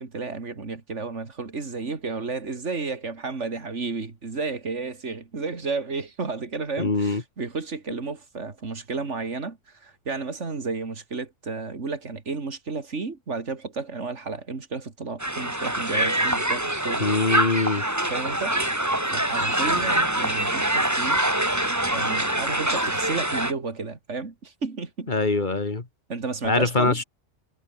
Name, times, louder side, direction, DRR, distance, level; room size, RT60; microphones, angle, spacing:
voice 1, 0.0-17.1 18.1-21.2 21.9-25.1 26.1-27.0, right 4 dB, 70° right, 2.9 m, -32 dB
voice 2, 6.8-7.2 17.0-17.8 25.1-25.9 26.4-27.0, left 3 dB, 40° left, 2.0 m, -23 dB
Crowd, 15.2-23.5, right 1 dB, 15° right, 2.6 m, -24 dB
omnidirectional pair, 1.3 m